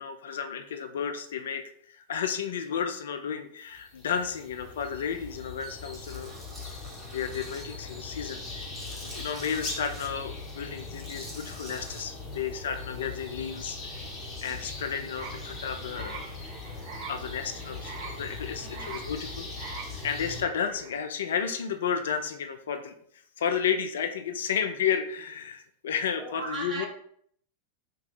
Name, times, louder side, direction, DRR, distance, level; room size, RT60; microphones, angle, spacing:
voice 1, 0.0-6.4 7.1-8.7 9.1-14.1 14.4-16.3 17.1-19.5 20.0-22.9 23.4-26.9, left 7 dB, 60° left, 8 dB, 0.3 m, -32 dB
sound 1, 3.7-20.4, left 3 dB, 20° left, 0.9 m, -40 dB
Tools, 5.9-7.6 8.1-10.1 10.8-12.0, right 1 dB, 5° right, 1.3 m, -46 dB
sound 2, 15.1-21.0, right 5 dB, 55° right, 1.4 m, -44 dB
voice 2, 18.6-19.1 26.2-26.9, right 3 dB, 25° right, -4 dB, 1.3 m, -38 dB
2.9 x 2.7 x 3.9 m, 0.64 s
figure-of-eight pair, 90°, 0 cm